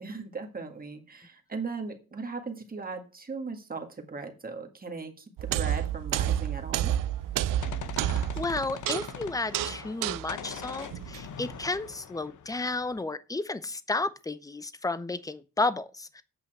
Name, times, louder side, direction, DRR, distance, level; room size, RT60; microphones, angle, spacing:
voice 1, 0.0-6.9, right 4 dB, 25° right, 1.7 m, -38 dB
sound 1, 5.4-11.7, right 11 dB, 75° right, 0.5 m, -30 dB
Gunshot gunfire, 7.2-10.0 10.3-13.0, left 8 dB, 65° left, 1.0 m, -42 dB
voice 2, 7.9-16.2, left 3 dB, 10° left, 0.7 m, -32 dB
8.5 x 5.6 x 8.0 m
cardioid pair, 130°, 33 cm